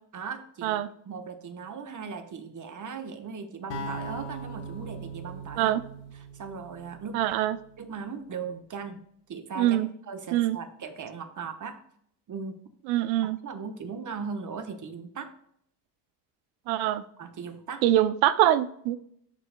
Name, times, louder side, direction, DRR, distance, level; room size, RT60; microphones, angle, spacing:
voice 1, 0.1-0.8 1.1-5.7 6.3-7.2 7.8-9.0 9.3-9.8 10.1-11.8 12.3-12.6 13.4-15.3 17.2-17.8, right 5 dB, 40° right, 8 dB, 1.1 m, -38 dB
sound 1, 3.7-7.8, right 2 dB, 60° left, 1.6 m, -40 dB
voice 2, 7.1-7.6 9.6-9.9 10.3-10.6 12.9-13.4 16.7-17.0 17.8-19.0, right 13 dB, 70° right, 15 dB, 0.7 m, -24 dB
13.0 x 4.5 x 2.2 m, 0.68 s
hypercardioid pair, 65°, 48 cm